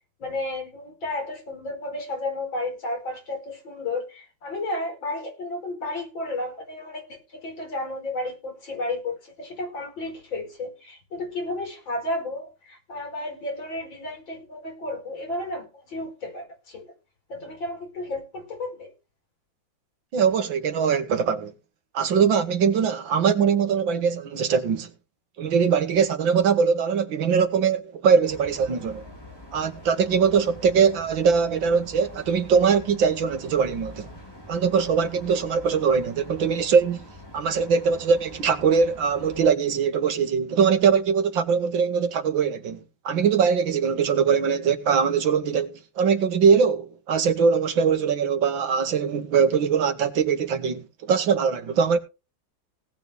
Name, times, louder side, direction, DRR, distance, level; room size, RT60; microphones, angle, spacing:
voice 1, 0.2-16.9 17.3-18.9, left 2 dB, 85° left, 5.5 m, -32 dB
voice 2, 20.1-21.5 21.9-24.9 25.4-29.0 29.5-34.1 34.5-37.1 37.3-42.8 43.0-52.0, right 6 dB, 80° right, 2.2 m, -22 dB
sound 1, 28.2-39.5, left 1 dB, 10° left, 3.9 m, -45 dB
18.0 x 9.3 x 3.3 m
omnidirectional pair, 2.1 m